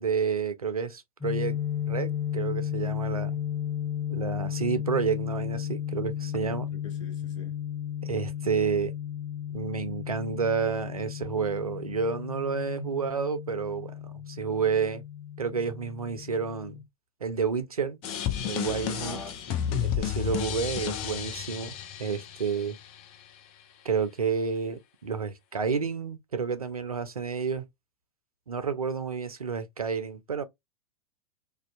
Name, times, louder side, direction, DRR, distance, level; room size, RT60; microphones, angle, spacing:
voice 1, 0.0-1.6 1.9-3.4 4.1-6.7 8.0-8.9 9.5-13.9 14.3-15.0 15.4-16.8 17.2-18.0 18.4-19.2 19.8-22.8 23.8-27.7 28.5-30.4, right 6 dB, 85° right, 0.5 m, -30 dB
sound 1, 1.2-16.8, left 10 dB, ahead, 0.8 m, -34 dB
voice 2, 6.5-7.5 19.0-20.2, left 3 dB, 60° left, 1.0 m, -45 dB
sound 2, 18.0-23.0, left 9 dB, 35° left, 0.6 m, -32 dB
2.5 x 2.2 x 2.3 m
figure-of-eight pair, 90°, 18 cm